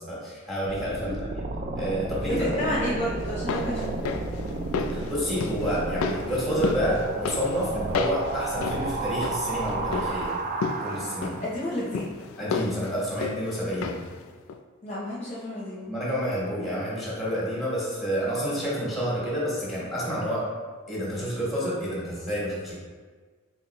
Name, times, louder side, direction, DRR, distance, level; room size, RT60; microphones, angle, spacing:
voice 1, 0.0-1.4 1.7-2.7 4.9-10.3 10.8-11.4 12.4-13.9 15.8-20.5 20.9-22.7, equal, ahead, -7 dB, 1.2 m, -29 dB
sound 1, 0.6-11.6, right 2 dB, 35° right, 0.3 m, -32 dB
voice 2, 2.3-4.0 11.4-12.3 14.8-15.9, equal, 30° left, -7 dB, 0.7 m, -31 dB
sound 2, 3.2-14.2 14.5-14.6, left 5 dB, 75° left, 0.3 m, -33 dB
4.1 x 4.0 x 2.9 m, 1.5 s
head